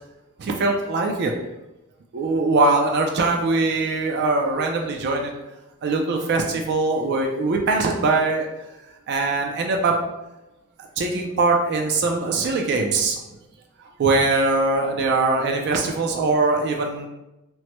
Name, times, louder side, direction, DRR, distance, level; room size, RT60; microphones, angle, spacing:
voice 1, 0.4-1.3 2.1-5.3 5.8-8.5 9.1-9.9 11.0-13.2 14.0-17.1, right 3 dB, 50° right, 2 dB, 0.4 m, -21 dB
3.0 x 2.1 x 2.9 m, 0.96 s
head